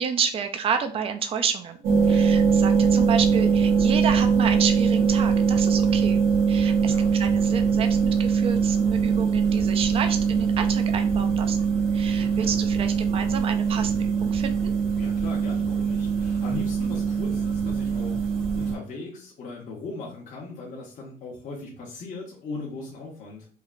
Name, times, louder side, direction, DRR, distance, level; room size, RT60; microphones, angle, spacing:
voice 1, 0.0-1.8 2.1-14.7, right 6 dB, 35° right, 7 dB, 0.4 m, -30 dB
sound 1, 1.8-18.7, right 6 dB, 60° right, 0.7 m, -22 dB
voice 2, 15.0-23.5, left 3 dB, 50° left, -2 dB, 0.7 m, -38 dB
3.1 x 2.1 x 2.4 m, 0.43 s
cardioid pair, 110°, 17 cm